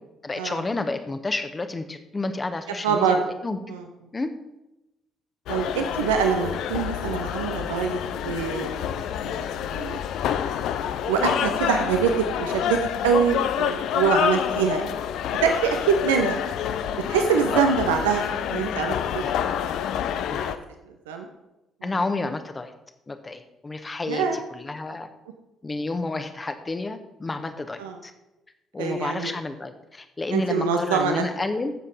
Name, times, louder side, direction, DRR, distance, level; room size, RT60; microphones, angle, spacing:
voice 1, 0.2-3.6 4.1-4.3 17.5-17.7 19.2-19.3 20.3-20.5 21.8-22.7 23.1-25.1 25.6-28.1 28.7-31.7, left 3 dB, 25° left, 8 dB, 1.2 m, -30 dB
voice 2, 2.8-3.2 3.7-3.8 5.5-10.0 11.0-14.8 15.4-16.4 17.1-18.2 18.5-19.2 21.1-21.3 21.8-21.9 24.1-24.4 27.8-28.0 28.8-29.3 30.3-31.2, right 6 dB, 75° right, 5 dB, 0.7 m, -24 dB
sound 1, 5.5-20.6, left 9 dB, 60° left, 0.5 m, -28 dB
14.0 x 7.1 x 4.0 m, 0.94 s
figure-of-eight pair, 45°, 0 cm